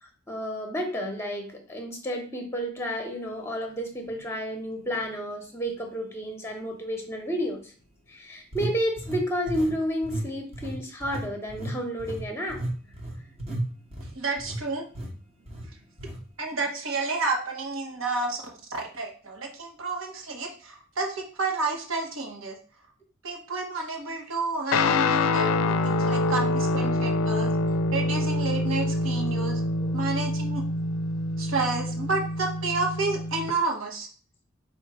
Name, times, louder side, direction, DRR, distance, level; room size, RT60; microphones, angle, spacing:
voice 1, 0.0-7.7 8.1-12.6 24.8-24.9, equal, 10° left, 3 dB, 0.9 m, -31 dB
sound 1, 4.1-4.2 4.8-5.0 8.5-9.8 10.0-10.3 10.5-14.6 15.0-15.1 15.5-15.7 16.0-16.2, right 1 dB, 30° right, 1.0 m, -34 dB
voice 2, 14.1-14.9 16.4-18.4 18.7-22.6 23.2-27.6 27.9-29.6 29.9-30.6 31.4-34.1, right 3 dB, 75° right, 2 dB, 1.1 m, -30 dB
Guitar, 24.7-33.5, left 2 dB, 85° left, 0.4 m, -26 dB
5.1 x 2.5 x 4.2 m, 0.41 s
head